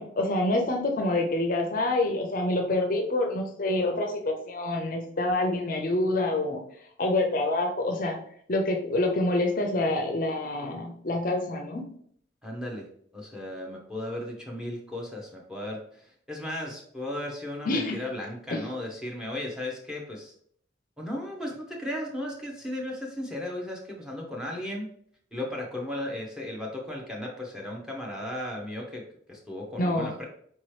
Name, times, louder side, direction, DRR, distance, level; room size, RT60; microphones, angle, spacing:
voice 1, 0.0-6.6 7.0-8.2 8.5-11.9 17.7-18.0 18.5-18.6 29.8-30.1, left 2 dB, 45° left, 3 dB, 0.5 m, -27 dB
voice 2, 12.4-12.9 13.1-20.3 21.0-24.9 25.3-30.2, left 1 dB, 5° right, -1 dB, 0.7 m, -35 dB
4.5 x 3.0 x 3.1 m, 0.63 s
head